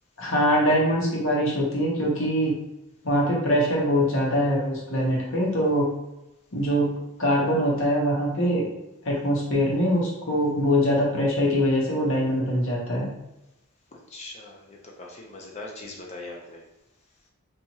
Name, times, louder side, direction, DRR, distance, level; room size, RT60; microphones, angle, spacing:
voice 1, 0.2-2.5 3.0-5.9 6.5-6.9 7.2-8.7 9.0-13.1, equal, 65° left, -3 dB, 0.8 m, -23 dB
voice 2, 14.1-16.6, left 2 dB, 30° left, -1 dB, 0.4 m, -41 dB
2.8 x 2.4 x 2.7 m, 0.91 s
head